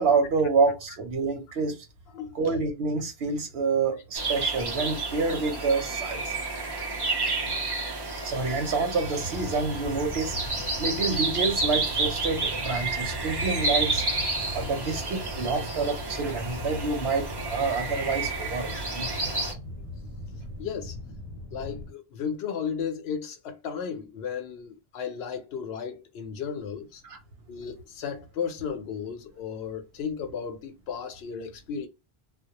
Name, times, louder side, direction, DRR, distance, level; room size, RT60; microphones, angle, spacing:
voice 1, 0.0-1.9 2.3-6.3 7.3-7.4 8.2-10.3 10.8-14.0 14.5-19.1 27.0-27.2, right 4 dB, 85° right, 0.9 m, -27 dB
sound 1, 4.1-19.5, right 3 dB, 30° right, 0.6 m, -30 dB
sound 2, 9.0-21.9, left 1 dB, 40° left, 0.8 m, -40 dB
voice 2, 20.6-21.0 21.5-27.0 27.5-31.9, left 7 dB, 85° left, 0.8 m, -34 dB
2.2 x 2.1 x 2.8 m
omnidirectional pair, 1.0 m